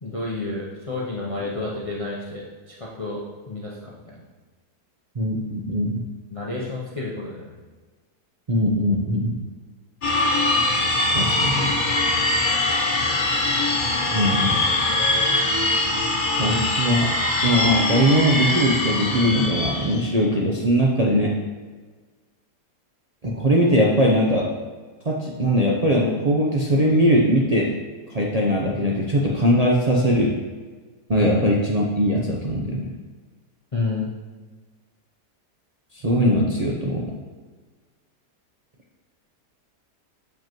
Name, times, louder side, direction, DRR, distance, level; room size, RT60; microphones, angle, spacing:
voice 1, 0.0-4.2 6.3-7.5 31.1-31.3 33.7-34.1, left 3 dB, 60° left, -4 dB, 0.3 m, -30 dB
voice 2, 5.2-6.0 8.5-9.3 11.1-11.8 14.1-14.6 16.4-17.1 17.4-21.3 23.2-24.4 25.1-27.7 28.1-30.3 31.1-32.9 35.9-37.1, equal, 70° right, -3 dB, 0.3 m, -20 dB
sound 1, 10.0-20.1, left 2 dB, 40° left, 0.8 m, -22 dB
7.5 x 5.2 x 3.0 m, 1.4 s
omnidirectional pair, 1.8 m